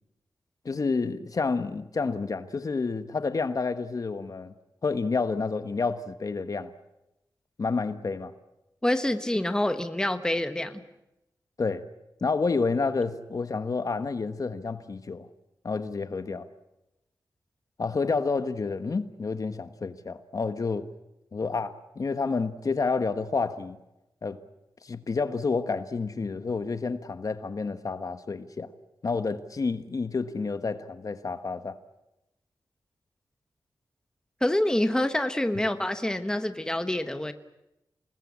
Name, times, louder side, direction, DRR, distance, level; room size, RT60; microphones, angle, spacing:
voice 1, 0.6-4.5 4.8-6.7 7.6-8.3 11.6-11.8 12.2-15.3 15.6-16.5 17.8-20.8 21.3-23.8 24.2-24.4 24.8-28.7 29.0-31.8, left 4 dB, 45° left, 1.3 m, -29 dB
voice 2, 8.8-10.8 34.4-37.3, left 1 dB, 10° left, 1.3 m, -26 dB
28.0 x 19.5 x 8.5 m
wide cardioid pair, 105°, 8 cm